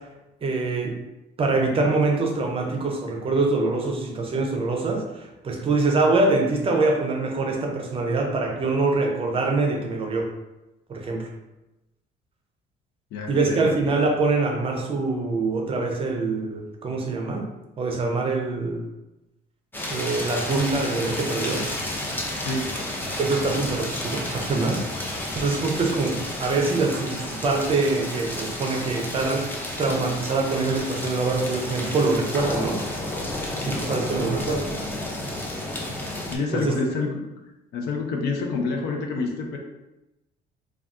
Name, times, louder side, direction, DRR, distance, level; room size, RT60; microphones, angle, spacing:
voice 1, 0.4-0.9 1.4-10.3 10.9-11.3 13.3-17.5 17.8-18.8 19.9-21.6 23.2-29.5 29.8-32.8 33.7-34.7 36.5-36.7, right 3 dB, 35° right, 1 dB, 0.5 m, -24 dB
voice 2, 13.1-13.7 22.4-22.7 36.3-37.2 37.7-39.6, left 3 dB, 75° left, 2 dB, 0.6 m, -27 dB
sound 1, 19.7-36.4, left 1 dB, 10° left, 0.5 m, -31 dB
2.3 x 2.2 x 3.6 m, 0.97 s
cardioid pair, 110°, 17 cm